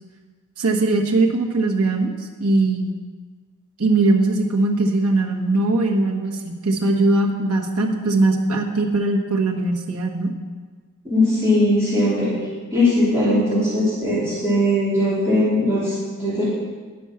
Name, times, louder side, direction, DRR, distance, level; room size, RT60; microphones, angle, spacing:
voice 1, 0.6-2.1 2.4-2.9 3.8-10.3 13.2-13.8, right 2 dB, 75° right, 0 dB, 1.3 m, -20 dB
voice 2, 11.0-12.3 12.7-16.5, left 1 dB, 15° right, -11 dB, 2.9 m, -19 dB
10.0 x 6.1 x 5.8 m, 1.5 s
head